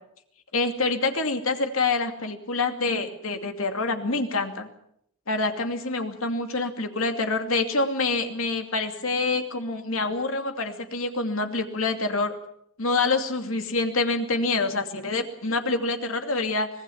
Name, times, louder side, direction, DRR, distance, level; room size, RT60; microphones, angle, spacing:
voice 1, 0.5-4.7 5.3-12.3 12.8-16.7, left 3 dB, 85° left, 6 dB, 2.6 m, -26 dB
25.0 x 19.5 x 7.2 m, 0.71 s
head